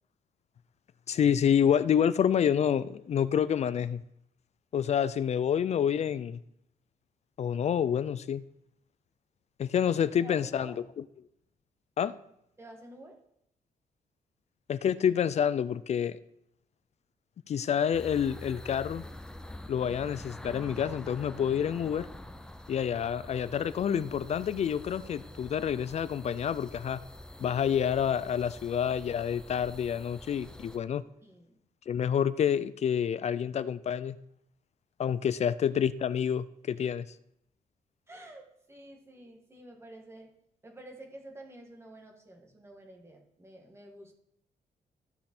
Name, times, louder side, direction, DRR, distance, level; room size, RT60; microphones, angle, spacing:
voice 1, 1.1-4.0 4.7-6.4 7.4-8.4 9.6-10.7 12.0-12.2 14.7-16.2 17.5-19.0 19.7-22.1 22.7-27.0 27.4-31.0 31.9-34.2 35.0-37.1, left 8 dB, 45° left, 16 dB, 0.4 m, -28 dB
voice 2, 10.2-10.8 12.6-13.2 31.2-31.6 38.1-40.3 40.6-44.1, right 1 dB, 15° right, 1 dB, 1.5 m, -49 dB
sound 1, 17.9-30.8, left 1 dB, 5° left, 0.6 m, -46 dB
14.0 x 5.3 x 4.4 m, 0.76 s
wide cardioid pair, 150°, 15 cm